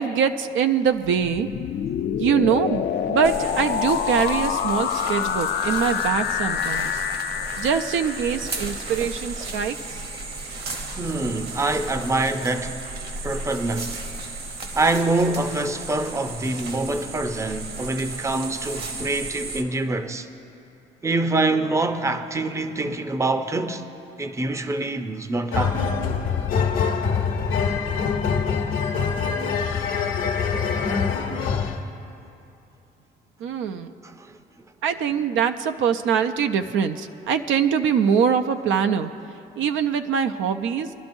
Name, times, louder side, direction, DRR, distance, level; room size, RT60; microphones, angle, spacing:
voice 1, 0.0-1.5 2.2-7.0 7.6-10.0 33.4-33.9 34.8-39.1 39.6-40.9, right 7 dB, 80° right, 0.5 m, -23 dB
sound 1, 1.0-9.0, left 9 dB, 60° left, 0.4 m, -27 dB
sound 2, 3.2-19.6, right 3 dB, 55° right, 1.2 m, -34 dB
voice 2, 11.0-12.8 13.2-14.1 14.7-20.3 21.0-23.9 24.2-25.8 34.0-34.3, right 2 dB, 15° right, 0.5 m, -25 dB
sound 3, 25.5-31.8, left 6 dB, 85° left, 1.0 m, -24 dB
21.5 x 11.0 x 2.6 m
cardioid pair, 90°, 20 cm